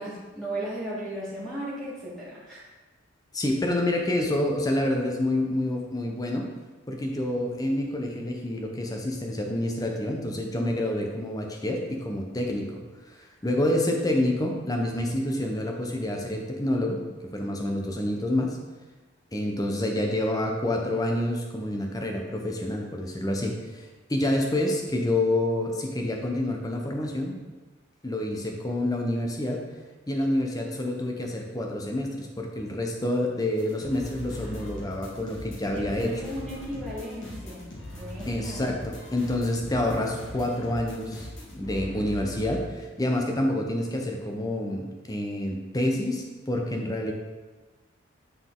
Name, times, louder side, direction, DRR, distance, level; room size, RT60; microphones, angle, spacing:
voice 1, 0.0-2.7 34.4-34.7 35.0-35.2 35.7-37.7 37.9-38.7, right 1 dB, ahead, -11 dB, 1.7 m, -36 dB
voice 2, 3.3-6.5 6.9-12.8 13.1-17.0 17.3-18.6 19.3-27.4 28.0-29.7 30.1-36.1 38.3-47.1, left 1 dB, 15° left, 1 dB, 0.7 m, -28 dB
sound 1, 33.6-42.6, equal, 60° left, 1.8 m, -39 dB
9.2 x 4.0 x 3.8 m, 1.2 s
head